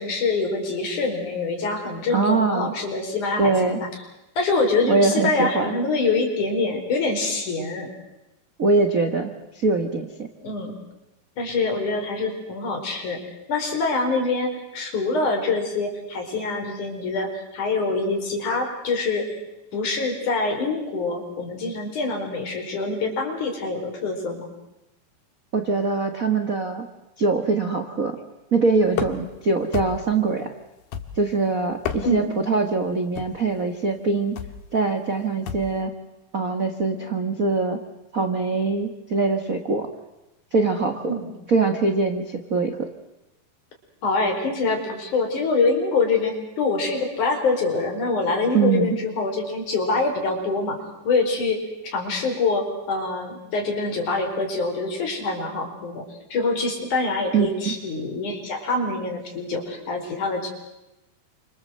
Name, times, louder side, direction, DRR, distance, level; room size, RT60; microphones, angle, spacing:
voice 1, 0.0-3.9 4.4-7.9 10.4-10.7 11.4-13.2 13.5-19.3 19.7-24.5 32.0-32.3 41.1-41.3 44.0-50.8 51.0-51.6 51.8-56.0 56.3-60.5, left 3 dB, 50° left, 3 dB, 5.9 m, -25 dB
voice 2, 2.1-2.7 3.4-3.8 4.9-5.7 8.6-10.3 25.5-26.9 27.2-28.2 28.5-30.5 31.1-34.4 34.7-35.9 36.3-37.8 38.1-39.9 40.5-41.1 41.5-42.9 48.5-49.0 57.3-57.8, right 3 dB, 55° right, 5 dB, 0.9 m, -23 dB
sound 1, 28.9-29.4 29.7-30.2 30.9-31.4 31.7-32.4 33.2-33.5 34.4-34.6 35.5-35.8, left 8 dB, 75° left, 3.6 m, -32 dB
29.0 x 26.0 x 7.8 m, 0.97 s
omnidirectional pair, 4.5 m